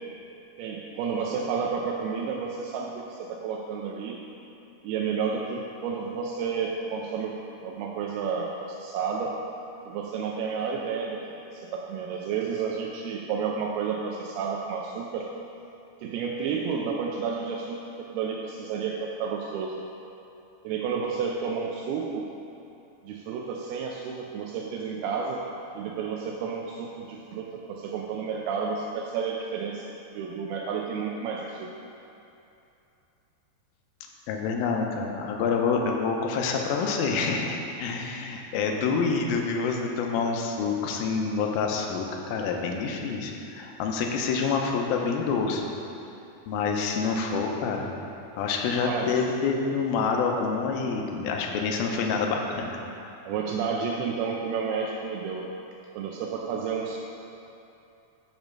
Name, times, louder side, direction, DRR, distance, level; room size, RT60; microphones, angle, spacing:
voice 1, 0.6-4.2 4.8-7.4 7.6-9.4 9.9-15.3 16.0-19.8 20.6-22.3 23.0-25.5 25.7-31.7 48.8-49.2 53.3-55.4 55.9-57.0, right 6 dB, 85° right, -1 dB, 2.5 m, -31 dB
voice 2, 34.3-45.7 46.5-47.9 48.4-52.8, left 5 dB, 80° left, 1 dB, 2.4 m, -27 dB
7.0 x 5.3 x 6.0 m, 2.8 s
omnidirectional pair, 4.5 m